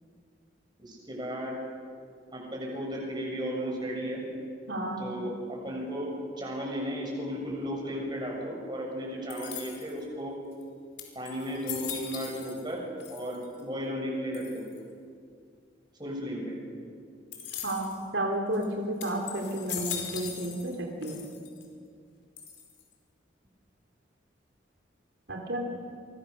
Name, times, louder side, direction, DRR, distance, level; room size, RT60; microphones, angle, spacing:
voice 1, 0.8-1.6 2.3-4.2 5.0-6.1 6.4-10.4 11.2-12.8 13.1-14.6 16.0-16.6, equal, 25° right, -1 dB, 7.1 m, -34 dB
voice 2, 4.7-5.0 17.6-21.2 25.3-25.7, right 1 dB, 75° right, 1 dB, 3.7 m, -32 dB
sound 1, 9.3-10.0 10.6-10.7 11.0-12.7 13.0-13.6 14.3-14.8 17.3-18.0 18.5-18.6 19.0-20.8 21.0-21.6 22.4-22.9, left 8 dB, 75° left, 4.9 m, -40 dB
28.5 x 24.0 x 6.8 m, 2.2 s
head